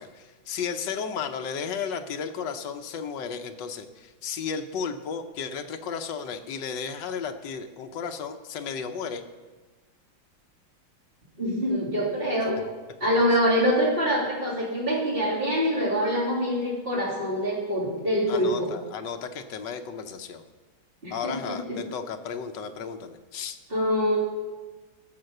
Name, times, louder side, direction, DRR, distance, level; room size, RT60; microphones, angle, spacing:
voice 1, 0.0-9.2 18.3-20.4 21.1-23.6, left 6 dB, 65° left, 7 dB, 1.3 m, -34 dB
voice 2, 11.4-12.6 13.0-18.7 21.0-21.8 23.7-24.2, equal, 25° right, -5 dB, 3.2 m, -25 dB
14.0 x 6.6 x 6.5 m, 1.3 s
omnidirectional pair, 2.3 m